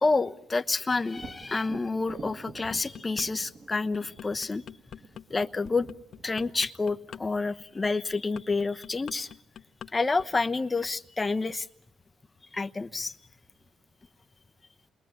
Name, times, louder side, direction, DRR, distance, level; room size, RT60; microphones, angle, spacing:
voice 1, 0.0-4.6 5.3-5.9 6.2-9.3 9.9-11.7 12.5-13.2, left 3 dB, 25° left, 11 dB, 1.0 m, -28 dB
Thunder, 1.1-8.8 12.4-12.5 13.0-13.9, right 3 dB, 40° right, 2.6 m, -48 dB
sound 1, 2.5-3.3 3.7-9.9 10.2-10.5, left 8 dB, 60° left, 1.2 m, -44 dB
28.5 x 22.0 x 9.4 m, 0.74 s
cardioid pair, 90°, 0 cm